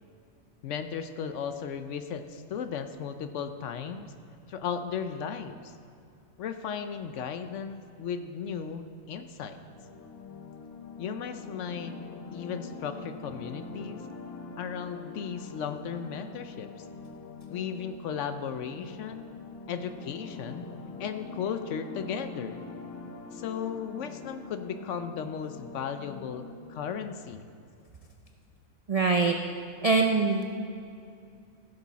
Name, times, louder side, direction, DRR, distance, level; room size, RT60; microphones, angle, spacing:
voice 1, 0.6-4.1 4.5-5.7 6.4-9.6 11.0-11.9 12.3-14.1 14.6-16.9 17.5-19.3 19.7-20.7 21.0-22.6 23.3-26.4 26.7-27.5, left 7 dB, 70° left, 8 dB, 0.9 m, -35 dB
sound 1, 9.5-26.9, left 4 dB, 90° left, 1.3 m, -44 dB
voice 2, 28.9-29.3 29.8-30.5, right 4 dB, 65° right, 3 dB, 0.3 m, -23 dB
15.0 x 6.8 x 4.0 m, 2.5 s
omnidirectional pair, 1.4 m